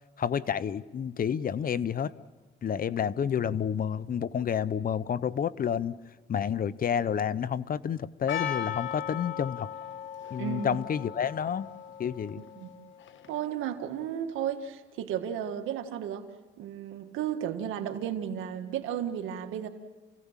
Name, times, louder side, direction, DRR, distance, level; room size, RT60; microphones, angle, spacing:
voice 1, 0.2-2.1 2.6-6.0 6.3-9.7 10.3-11.7 12.0-12.4, left 8 dB, 45° left, 17 dB, 0.7 m, -29 dB
Percussion, 8.3-13.5, left 9 dB, 70° left, 1.2 m, -38 dB
voice 2, 10.4-10.8 12.4-12.7 13.3-16.2 16.6-19.7, right 9 dB, 90° right, 6 dB, 1.7 m, -34 dB
28.5 x 17.0 x 7.4 m, 1.2 s
cardioid pair, 90°, 20 cm